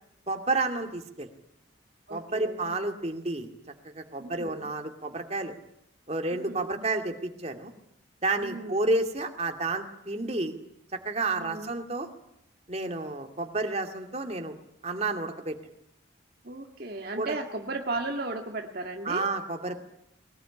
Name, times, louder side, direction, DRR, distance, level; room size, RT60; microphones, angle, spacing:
voice 1, 0.3-1.3 2.1-3.5 3.8-5.5 6.1-7.7 8.2-10.6 10.9-12.1 12.7-14.6 14.8-15.6 17.2-17.3 19.0-19.8, right 2 dB, 30° right, 5 dB, 2.5 m, -30 dB
voice 2, 2.1-2.6 4.2-4.7 6.3-6.8 8.4-8.9 11.4-11.7 16.4-19.3, right 2 dB, 50° right, 2 dB, 2.0 m, -36 dB
22.0 x 21.0 x 10.0 m, 0.78 s
head